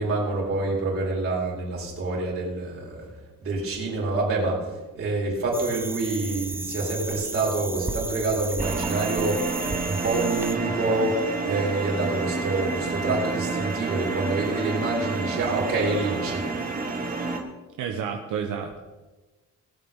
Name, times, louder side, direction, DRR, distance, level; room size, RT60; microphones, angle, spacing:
voice 1, 0.0-3.1 3.4-4.6 4.9-9.4 9.8-16.5, right 3 dB, 45° right, -3 dB, 4.7 m, -27 dB
sound 1, 5.5-10.6, right 2 dB, 10° right, 0.6 m, -34 dB
sound 2, 8.6-17.4, right 3 dB, 30° right, 1.5 m, -29 dB
voice 2, 17.8-18.8, right 7 dB, 80° right, 2 dB, 1.3 m, -30 dB
21.0 x 8.0 x 3.8 m, 1.2 s
cardioid pair, 155°, 30 cm